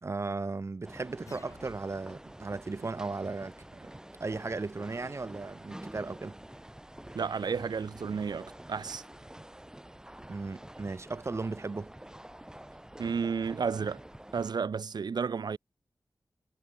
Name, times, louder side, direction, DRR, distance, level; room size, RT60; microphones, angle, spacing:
voice 1, 0.0-3.5 3.8-3.9 4.2-6.4 10.3-11.9, right 3 dB, 40° right, 2.8 m, -36 dB
sound 1, 0.8-14.5, right 1 dB, 10° right, 5.4 m, -48 dB
sound 2, 1.3-2.3, left 3 dB, 45° left, 3.1 m, -53 dB
voice 2, 7.1-9.0 13.0-14.0 14.3-15.6, right 5 dB, 85° right, 2.2 m, -32 dB
wide cardioid pair, 110°, 7 cm